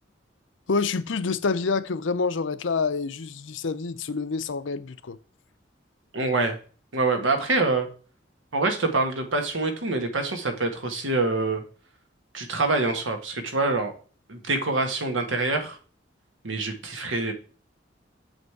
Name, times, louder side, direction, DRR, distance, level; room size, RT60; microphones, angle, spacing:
voice 1, 0.7-5.2, left 4 dB, 80° left, 0.6 m, -27 dB
voice 2, 6.1-6.6 6.9-7.9 8.5-11.6 12.3-13.9 14.3-15.8 16.4-17.3, right 3 dB, 90° right, 1.6 m, -25 dB
7.2 x 5.2 x 4.7 m
head